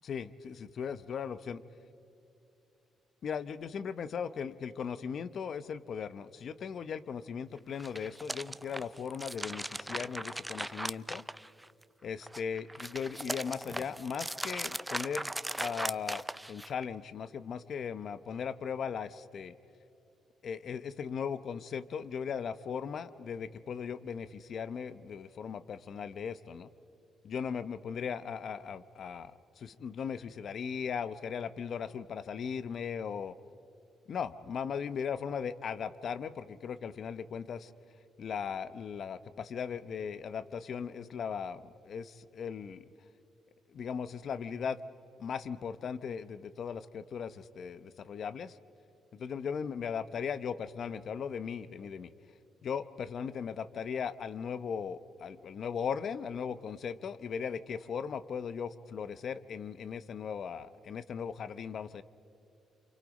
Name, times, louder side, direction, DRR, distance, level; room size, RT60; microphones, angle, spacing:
voice 1, 0.0-1.6 3.2-11.2 12.0-19.5 20.4-26.7 27.2-33.3 34.1-37.7 38.2-42.8 43.7-44.8 45.2-48.6 49.1-52.1 52.6-62.0, left 7 dB, 60° left, 14 dB, 0.8 m, -38 dB
sound 1, 7.7-11.8 12.2-16.8, right 1 dB, 10° right, 0.4 m, -38 dB
28.5 x 27.5 x 5.3 m, 2.8 s
cardioid pair, 90°, 0 cm